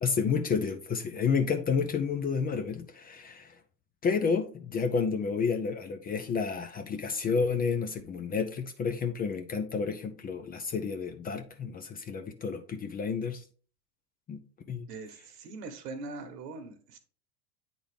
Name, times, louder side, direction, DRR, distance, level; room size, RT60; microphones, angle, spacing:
voice 1, 0.0-3.6 4.0-13.4 14.3-14.4 14.7-14.9, left 5 dB, 20° left, 7 dB, 0.5 m, -30 dB
voice 2, 14.9-17.0, right 3 dB, 70° right, 8 dB, 1.4 m, -42 dB
8.8 x 4.0 x 3.5 m, 0.41 s
hypercardioid pair, 100°, 49 cm